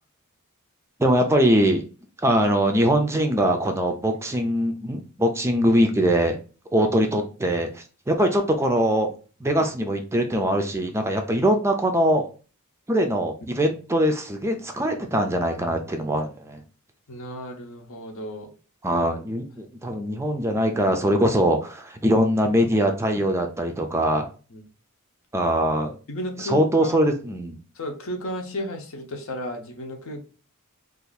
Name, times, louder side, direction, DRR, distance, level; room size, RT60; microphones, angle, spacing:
voice 1, 1.0-1.8 2.2-6.4 6.7-9.1 9.4-12.3 12.9-16.6 18.8-24.3 25.3-25.9 26.4-27.6, equal, 10° right, 4 dB, 0.4 m, -22 dB
voice 2, 17.1-18.5 24.5-24.6 26.1-27.0 27.7-30.2, left 1 dB, 65° left, 4 dB, 0.8 m, -33 dB
2.6 x 2.5 x 3.9 m, 0.36 s
head